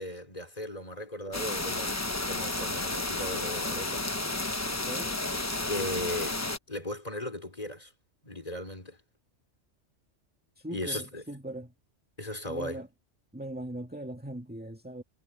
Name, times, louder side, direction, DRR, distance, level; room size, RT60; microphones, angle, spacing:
voice 1, 0.0-2.0 2.3-4.0 5.7-6.4 6.7-7.9 8.2-9.0 10.7-11.2 12.2-12.8, left 1 dB, 30° left, 3.9 m, -37 dB
sound 1, 1.3-6.6, left 2 dB, 15° left, 0.9 m, -32 dB
voice 2, 4.7-5.1 10.6-11.7 12.5-12.9 13.3-15.0, right 1 dB, 10° right, 2.2 m, -40 dB
omnidirectional pair, 1.2 m